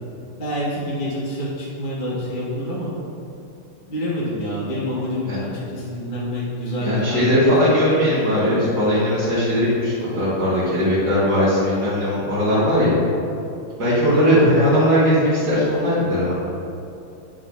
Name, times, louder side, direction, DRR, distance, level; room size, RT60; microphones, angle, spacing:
voice 1, 0.4-2.9 3.8-7.2 14.3-14.4, equal, 25° left, -8 dB, 1.5 m, -27 dB
voice 2, 6.8-13.0 13.8-16.3, equal, 50° right, -13 dB, 2.2 m, -19 dB
8.8 x 4.8 x 3.9 m, 2.7 s
omnidirectional pair, 2.4 m